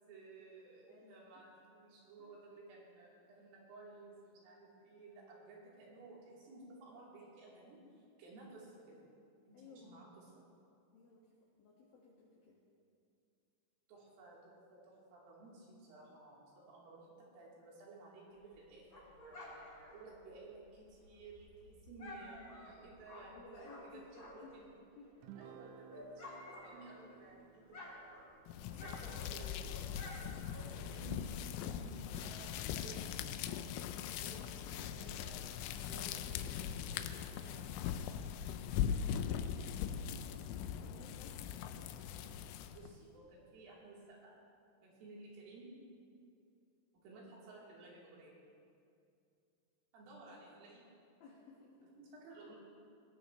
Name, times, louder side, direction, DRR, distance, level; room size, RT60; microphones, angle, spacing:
voice 1, 0.0-9.0 9.4-10.3 13.9-19.6 19.9-23.6 23.9-24.0 24.5-24.7 25.4-26.3 26.6-27.9 28.6-33.2 34.0-37.8 42.7-44.3 44.8-45.7 47.0-48.4 49.9-50.9 52.0-52.5, right 3 dB, 70° right, -6 dB, 6.2 m, -56 dB
voice 2, 0.9-1.3 2.2-2.4 9.5-10.1 10.9-11.3 11.6-12.6 23.3-24.6 25.0-25.1 39.1-42.2 51.2-51.9, left 3 dB, 60° left, -4 dB, 2.9 m, -59 dB
Dog, 18.4-24.7 25.0-27.3 27.6-31.0, left 1 dB, 25° left, 2.5 m, -53 dB
Guitar, 25.2-29.8, right 9 dB, 90° right, 2.7 m, -59 dB
sound 1, 28.5-42.9, left 9 dB, 80° left, 3.0 m, -40 dB
21.0 x 20.0 x 3.2 m, 2.5 s
omnidirectional pair, 6.0 m